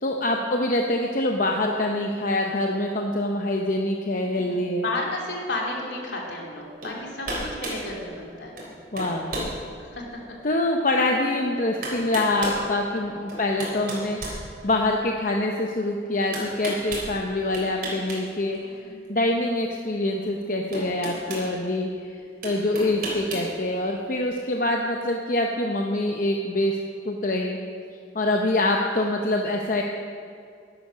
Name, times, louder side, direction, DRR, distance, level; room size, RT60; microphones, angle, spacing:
voice 1, 0.0-4.8 8.9-9.3 10.4-18.8 19.1-22.1 22.4-26.8 27.0-27.6 28.1-29.8, left 1 dB, 45° left, 1 dB, 0.8 m, -25 dB
voice 2, 4.2-8.6 9.8-10.2 18.6-19.1, left 2 dB, 70° left, -2 dB, 2.7 m, -33 dB
sound 1, 6.8-7.0 7.2-7.8 8.6-8.7 9.0-9.5 10.1-10.2 11.3-11.4 11.8-12.6 13.3-15.0 16.3-17.1 17.5-18.2 18.5-18.7 20.1-20.2 20.7-21.5 22.4-23.5, right 1 dB, 50° right, 3.5 m, -32 dB
11.5 x 11.0 x 6.2 m, 2.4 s
head